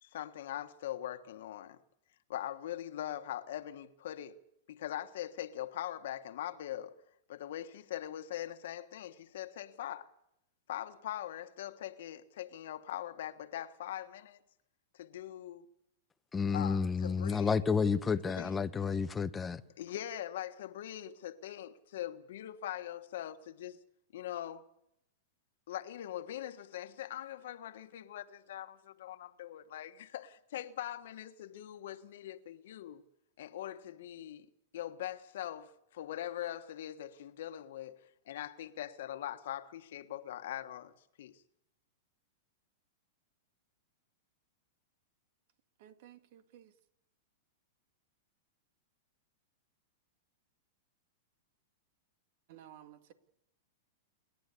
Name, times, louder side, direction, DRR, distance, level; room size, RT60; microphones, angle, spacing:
voice 1, 0.0-1.8 2.3-4.4 4.7-7.0 7.3-10.1 10.7-14.4 14.9-15.7 16.5-17.6 18.3-18.9 19.8-23.8 24.1-24.6 25.7-33.0 33.4-34.5 34.7-40.9 41.2-41.4, left 12 dB, 70° left, 1.4 m, -42 dB
voice 2, 16.3-19.6, left 5 dB, 15° left, 1.0 m, -30 dB
voice 3, 45.8-46.7 52.5-53.1, right 11 dB, 60° right, 2.1 m, -55 dB
28.5 x 11.5 x 8.4 m
hypercardioid pair, 125°, 0 cm